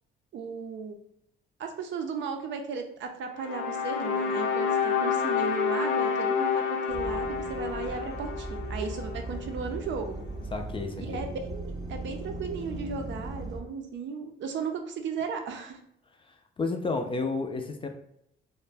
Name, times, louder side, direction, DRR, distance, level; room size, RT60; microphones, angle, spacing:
voice 1, 0.3-1.0 1.6-10.2 11.0-15.8, right 5 dB, 70° right, 5 dB, 0.5 m, -36 dB
sound 1, 3.3-9.6, left 6 dB, 85° left, 0.5 m, -29 dB
sound 2, 6.9-13.6, right 2 dB, 20° right, 0.7 m, -38 dB
voice 2, 10.5-11.3 16.2-17.9, left 3 dB, 25° left, 5 dB, 0.3 m, -32 dB
2.5 x 2.1 x 3.2 m, 0.78 s
cardioid pair, 90°, 20 cm